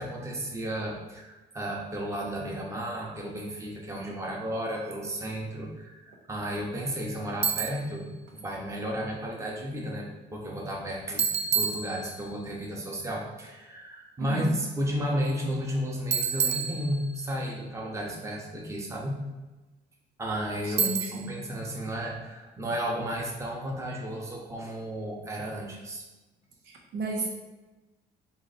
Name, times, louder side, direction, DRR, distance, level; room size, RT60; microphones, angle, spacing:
voice 1, 0.0-19.2 20.2-26.1, equal, 15° right, -2 dB, 0.9 m, -33 dB
Bicycle, 7.4-7.9 11.2-12.4 16.1-17.4 20.8-21.4, right 6 dB, 40° right, 0.4 m, -29 dB
voice 2, 14.2-14.5 20.7-21.3 26.7-27.3, right 2 dB, 75° right, -1 dB, 1.0 m, -33 dB
4.0 x 3.1 x 4.0 m, 1.1 s
cardioid pair, 110°, 17 cm